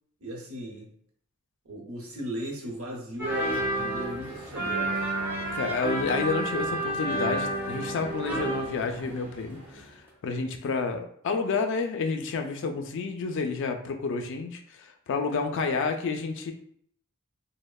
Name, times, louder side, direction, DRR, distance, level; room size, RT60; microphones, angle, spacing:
voice 1, 0.2-0.9 1.6-5.1, right 1 dB, 85° right, -1 dB, 0.8 m, -37 dB
sound 1, 3.2-9.8 10.1-10.2, right 1 dB, 10° right, 0.6 m, -31 dB
voice 2, 5.5-9.9 10.2-16.5, left 4 dB, 60° left, 5 dB, 0.4 m, -30 dB
3.0 x 2.0 x 2.2 m, 0.64 s
head